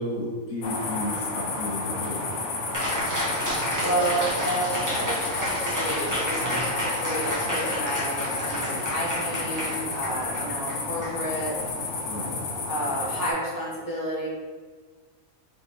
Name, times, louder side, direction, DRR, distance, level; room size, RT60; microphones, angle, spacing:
voice 1, 0.0-2.4 6.4-6.7 12.1-12.4, left 1 dB, 65° left, -4 dB, 1.1 m, -33 dB
sound 1, 0.6-13.3, left 3 dB, 90° left, 1.2 m, -31 dB
Cheering, 2.7-11.7, equal, 15° right, 0.8 m, -31 dB
voice 2, 3.4-11.6 12.7-14.3, right 1 dB, 15° left, -6 dB, 1.0 m, -31 dB
3.4 x 3.4 x 4.0 m, 1.5 s
omnidirectional pair, 1.5 m